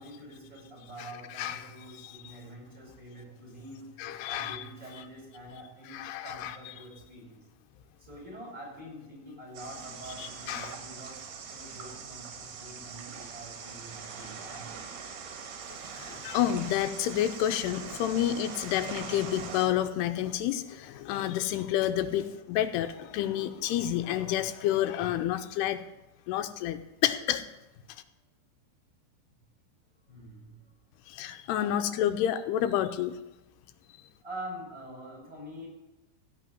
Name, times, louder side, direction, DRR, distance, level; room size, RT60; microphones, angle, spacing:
voice 1, 0.0-7.4 8.0-11.2 11.5-14.8 15.1-15.2 20.3-20.4 22.1-22.2 30.1-30.6 31.1-31.3 31.5-31.9 34.2-35.7, right 1 dB, 20° right, -4 dB, 5.4 m, -46 dB
voice 2, 1.4-1.7 2.0-2.2 4.0-4.6 5.9-6.6 10.2-10.7 16.0-25.8 26.3-27.4 31.1-33.1, left 11 dB, 85° left, 9 dB, 2.7 m, -29 dB
sound 1, 9.5-19.7, right 6 dB, 75° right, 3.6 m, -42 dB
16.0 x 5.7 x 9.1 m, 1.0 s
omnidirectional pair, 4.7 m